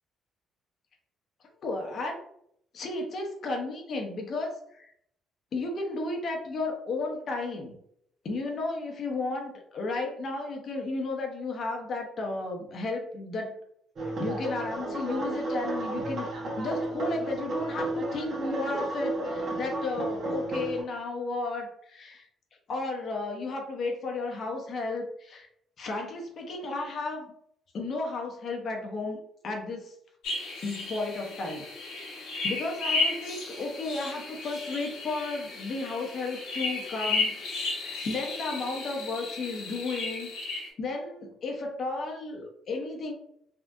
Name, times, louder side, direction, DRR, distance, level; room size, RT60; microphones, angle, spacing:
voice 1, 1.6-2.2 2.7-4.9 5.5-7.8 8.2-13.6 14.0-16.3 16.6-22.3 22.7-25.5 25.8-27.3 27.7-29.2 29.4-29.9 30.6-31.7 32.4-37.4 37.8-40.3 40.5-43.1, left 3 dB, 55° left, 2 dB, 0.8 m, -33 dB
sound 1, 14.0-20.8, right 2 dB, 55° right, 1.2 m, -32 dB
sound 2, 30.2-40.7, left 3 dB, 80° left, 1.2 m, -34 dB
3.6 x 2.3 x 2.6 m, 0.71 s
supercardioid pair, 70°, 0 cm